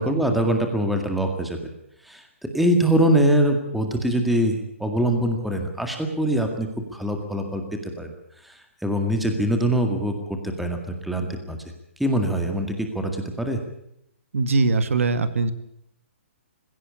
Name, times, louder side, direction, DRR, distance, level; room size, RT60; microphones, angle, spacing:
voice 1, 0.0-1.6 2.1-2.2 2.5-7.6 8.0-8.1 8.4-11.6 12.0-13.6, right 1 dB, ahead, 4 dB, 2.0 m, -23 dB
voice 2, 14.3-15.5, right 3 dB, 85° right, 12 dB, 2.0 m, -21 dB
20.0 x 16.5 x 8.4 m, 0.78 s
hypercardioid pair, 170°, 7 cm